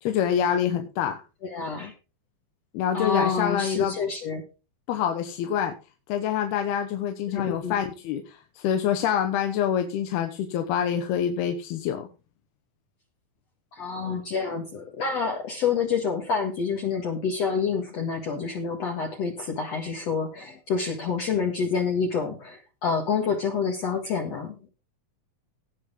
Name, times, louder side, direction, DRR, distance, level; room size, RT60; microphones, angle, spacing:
voice 1, 0.0-1.2 2.7-4.0 4.9-5.7 6.1-12.1, left 9 dB, 90° left, 6 dB, 3.1 m, -26 dB
voice 2, 1.4-1.9 2.9-4.4 7.3-7.8 13.7-24.6, left 5 dB, 50° left, 2 dB, 2.3 m, -28 dB
17.5 x 6.7 x 3.7 m, 0.32 s
omnidirectional pair, 4.4 m